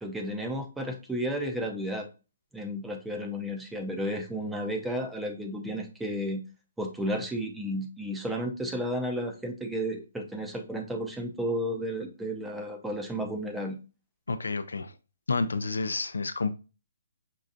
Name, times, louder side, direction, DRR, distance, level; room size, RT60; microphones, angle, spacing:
voice 1, 0.0-2.1 2.5-6.4 6.8-13.8, equal, 5° right, 0.6 m, -32 dB
voice 2, 14.3-14.9 15.3-16.5, left 3 dB, 90° left, 0.4 m, -29 dB
5.4 x 2.4 x 2.5 m
hypercardioid pair, 150°, 0 cm